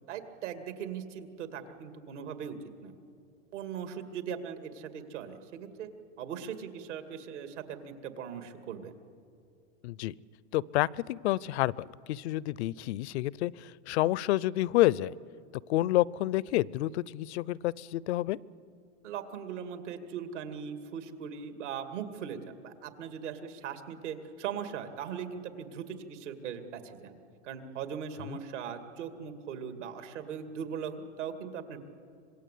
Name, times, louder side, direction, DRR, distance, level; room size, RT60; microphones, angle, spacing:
voice 1, 0.1-2.6 2.8-2.9 3.5-5.9 6.2-8.9 19.0-27.2 27.4-31.8, right 7 dB, 75° right, 7 dB, 2.6 m, -39 dB
voice 2, 9.8-10.1 10.5-15.1 15.7-18.4 28.3-28.4, left 16 dB, 65° left, 24 dB, 0.6 m, -29 dB
25.5 x 21.0 x 8.5 m, 2.3 s
supercardioid pair, 130°, 36 cm